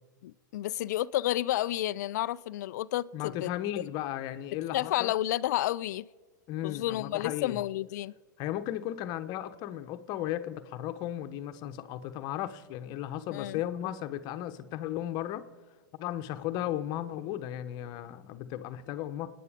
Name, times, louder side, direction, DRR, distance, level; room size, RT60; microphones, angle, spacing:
voice 1, 0.2-3.5 4.7-6.1 6.6-8.1 13.3-13.6, left 14 dB, 60° left, 0.4 m, -31 dB
voice 2, 3.1-5.2 6.5-7.6 8.4-15.5 15.9-19.3, left 12 dB, 40° left, 1.0 m, -35 dB
26.0 x 9.5 x 5.1 m
hypercardioid pair, 110°, 11 cm